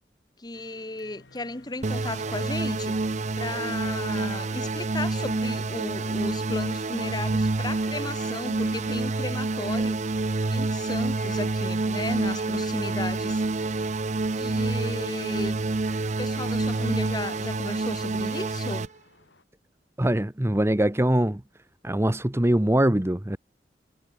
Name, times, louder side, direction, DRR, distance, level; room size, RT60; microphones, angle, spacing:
voice 1, 0.4-3.0 3.4-10.0 10.5-13.4 14.3-15.6 16.2-18.9, left 2 dB, 25° left, 1.3 m, -35 dB
sound 1, 0.5-19.4, left 4 dB, 85° left, 4.3 m, -56 dB
sound 2, 1.8-18.9, right 3 dB, 40° right, 0.7 m, -28 dB
voice 2, 20.0-21.4 21.8-23.4, right 1 dB, 15° right, 0.9 m, -22 dB
head